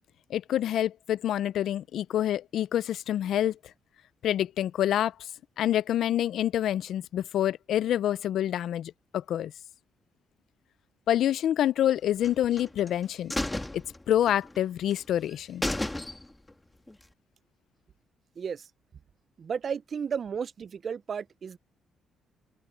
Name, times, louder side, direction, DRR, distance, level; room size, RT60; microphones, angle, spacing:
voice 1, 0.3-3.6 4.2-5.1 5.6-9.5 11.1-13.3 13.7-15.6, left 11 dB, 75° left, 0.5 m, -27 dB
sound 1, 12.2-12.9 13.3-14.6 14.9-15.0 15.3-15.4 15.6-16.5 16.9-17.0, left 1 dB, 10° left, 1.7 m, -33 dB
voice 2, 18.4-18.7 19.4-21.6, right 7 dB, 50° right, 0.4 m, -33 dB
open air
cardioid pair, 90°, 0 cm